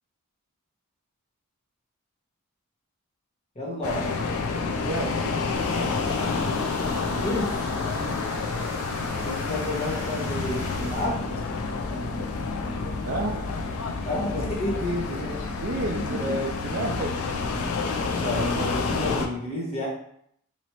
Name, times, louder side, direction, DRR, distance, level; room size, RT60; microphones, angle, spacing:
voice 1, 3.5-4.1 7.2-7.7 9.2-11.2 14.0-15.4 16.2-16.4 18.2-19.9, left 1 dB, 30° left, -4 dB, 1.1 m, -30 dB
sound 1, 3.8-19.3, left 4 dB, 75° left, 0.5 m, -29 dB
voice 2, 4.8-5.5 7.9-8.2 13.0-13.5 14.7-14.9 15.6-17.1, right 2 dB, 50° right, 0 dB, 0.5 m, -31 dB
sound 2, 5.5-11.1, right 1 dB, 75° right, 0.9 m, -40 dB
3.0 x 2.9 x 4.4 m, 0.69 s
head